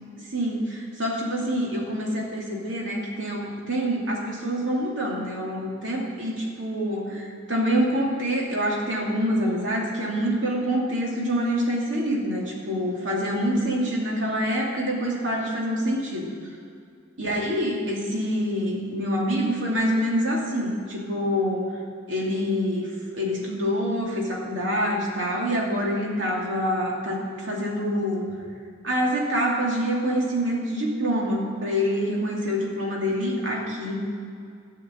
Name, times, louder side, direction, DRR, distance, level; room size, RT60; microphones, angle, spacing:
voice 1, 0.2-16.3 17.2-21.7 22.1-28.2 28.8-34.0, equal, 75° right, -3 dB, 2.6 m, -26 dB
13.5 x 5.7 x 9.2 m, 2.3 s
head